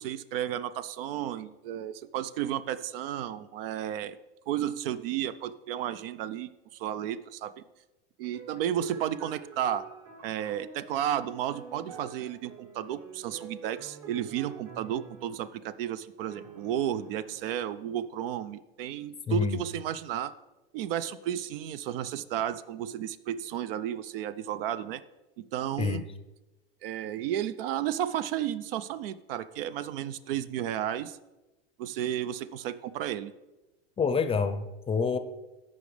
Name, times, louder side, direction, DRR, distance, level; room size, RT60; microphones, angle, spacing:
voice 1, 0.0-4.2 4.5-7.6 8.2-9.9 10.2-20.3 20.7-25.0 25.5-26.0 26.8-31.2 31.8-33.3, right 11 dB, 70° right, 15 dB, 0.5 m, -33 dB
sound 1, 8.2-15.5 16.3-17.8, right 5 dB, 50° right, 1.3 m, -48 dB
voice 2, 19.3-19.6 25.8-26.0 34.0-35.2, left 5 dB, 20° left, 11 dB, 0.6 m, -27 dB
13.5 x 5.2 x 3.3 m, 1.1 s
hypercardioid pair, 95°, 30 cm